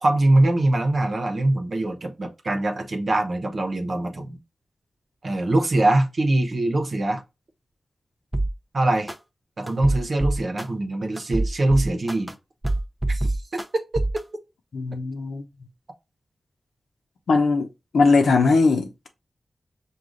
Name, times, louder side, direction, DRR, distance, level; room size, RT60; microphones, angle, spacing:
voice 1, 0.0-4.4 5.2-7.2 8.7-9.1 9.6-12.3 13.1-13.3, right 2 dB, 60° right, 0.9 m, -22 dB
sound 1, 8.3-8.5 9.1-9.2 9.7-10.6 11.2-12.3 12.6-13.6 13.9-14.2, right 2 dB, 15° right, 0.6 m, -24 dB
voice 2, 14.7-15.4 17.3-17.7 17.9-19.1, left 4 dB, 85° left, 0.7 m, -19 dB
4.8 x 2.4 x 3.8 m
cardioid pair, 45°, 0 cm